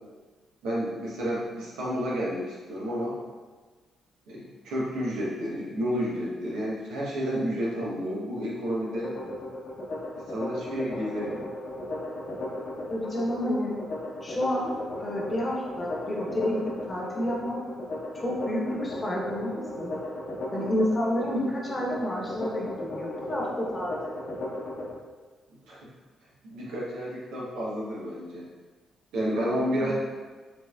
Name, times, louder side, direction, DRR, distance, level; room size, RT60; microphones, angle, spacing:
voice 1, 0.6-3.2 4.3-9.1 10.3-11.5 25.7-25.8 26.4-28.5 29.1-29.9, equal, 80° right, -6 dB, 1.0 m, -30 dB
sound 1, 8.9-24.9, left 1 dB, 60° left, 0.9 m, -36 dB
voice 2, 12.9-13.7 14.2-14.7 15.0-17.6 18.1-19.9 20.5-23.9 29.8-29.9, left 1 dB, 30° left, -3 dB, 1.1 m, -30 dB
4.4 x 2.9 x 2.4 m, 1.3 s
hypercardioid pair, 50°, 0 cm